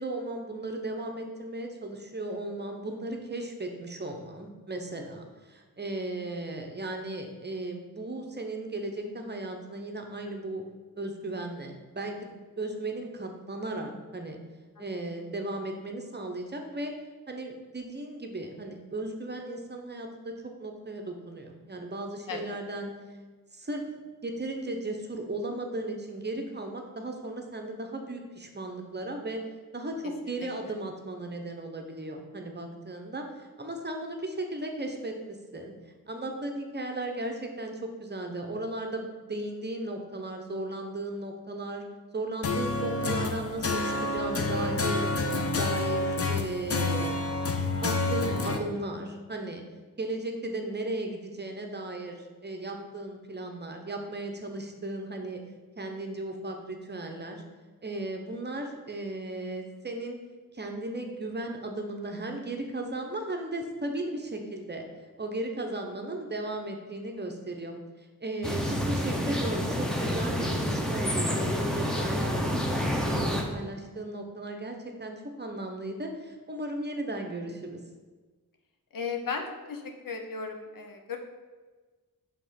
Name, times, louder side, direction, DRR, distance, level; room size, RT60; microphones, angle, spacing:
voice 1, 0.0-10.6 11.0-14.4 14.8-16.9 17.3-20.3 20.6-22.9 23.5-23.8 24.2-29.4 29.7-35.7 36.1-41.8 42.1-45.1 45.5-47.2 47.8-49.6 50.0-55.4 55.8-57.4 57.8-60.2 60.5-64.8 65.2-67.8 68.2-77.8, right 2 dB, 30° right, 3 dB, 0.8 m, -36 dB
voice 2, 14.8-15.2 22.3-22.4 30.7-30.8 78.9-81.2, left 5 dB, 70° left, 4 dB, 0.8 m, -36 dB
sound 1, 42.4-48.6, left 3 dB, 45° left, 0.6 m, -28 dB
sound 2, 68.4-73.4, equal, ahead, 0.8 m, -28 dB
5.3 x 3.6 x 5.7 m, 1.3 s
wide cardioid pair, 85°, 34 cm